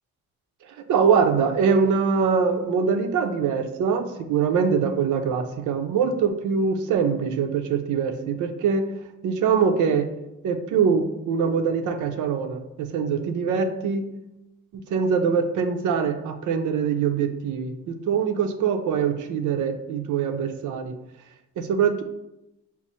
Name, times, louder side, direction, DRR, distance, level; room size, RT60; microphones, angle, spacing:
voice 1, 0.7-8.9 9.2-10.1 10.4-14.1 14.7-20.9 21.6-22.0, right 6 dB, 75° right, 7 dB, 0.6 m, -23 dB
6.0 x 2.0 x 4.2 m, 0.90 s
cardioid pair, 90°, 30 cm